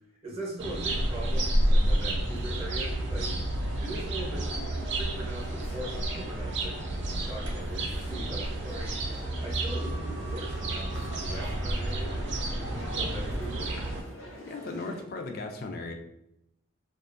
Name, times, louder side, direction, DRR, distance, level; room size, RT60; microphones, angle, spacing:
voice 1, 0.2-3.4 3.8-9.1 9.4-12.2 12.7-13.7, right 1 dB, 30° right, -3 dB, 0.7 m, -40 dB
sound 1, 0.6-14.0, right 1 dB, 55° right, 0.4 m, -30 dB
sound 2, 0.7-15.0, equal, 85° left, 0.7 m, -48 dB
voice 2, 14.4-15.9, left 3 dB, 45° left, 3 dB, 0.3 m, -36 dB
2.4 x 2.3 x 2.5 m, 0.81 s
head